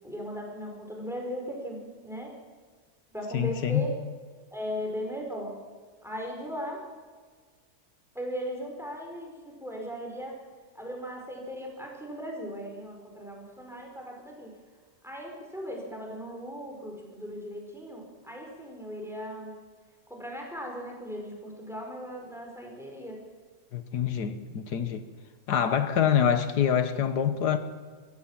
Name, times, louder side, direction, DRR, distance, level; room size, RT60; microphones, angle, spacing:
voice 1, 0.0-2.3 3.1-3.9 4.5-5.5 6.0-6.8 8.1-9.3 9.6-10.3 10.7-14.5 15.0-19.5 20.1-23.2, equal, ahead, 5.0 m, -37 dB
voice 2, 3.3-3.9 23.7-25.0 25.5-27.6, left 8 dB, 85° left, 1.7 m, -25 dB
24.0 x 15.5 x 7.4 m
omnidirectional pair, 1.7 m